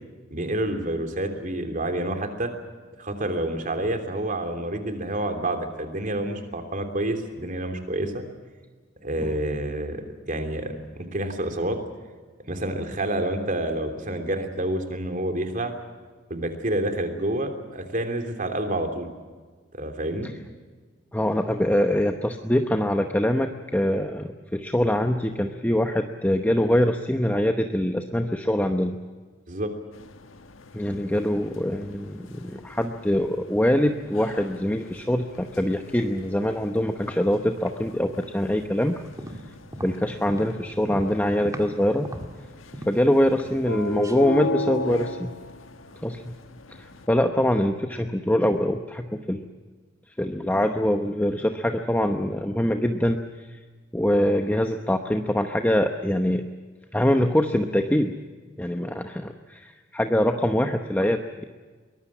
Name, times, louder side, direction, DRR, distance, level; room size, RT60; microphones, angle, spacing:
voice 1, 0.3-2.5 3.0-8.2 9.0-10.0 10.3-11.8 12.5-15.7 16.3-19.1 19.7-20.3 29.5-29.7, right 1 dB, 40° right, 6 dB, 3.2 m, -28 dB
voice 2, 21.1-29.0 30.7-39.0 39.8-42.1 42.9-45.3 46.0-46.3 46.8-49.4 50.2-53.6 53.9-56.5 56.9-58.1 58.6-61.4, left 1 dB, 10° left, 5 dB, 0.9 m, -24 dB
sound 1, 29.9-47.1, left 2 dB, 90° left, 1.4 m, -38 dB
sound 2, 39.0-41.8 42.0-43.1 43.4-43.8 44.0-44.2, right 1 dB, 15° right, 2.1 m, -38 dB
23.0 x 20.0 x 7.3 m, 1.4 s
head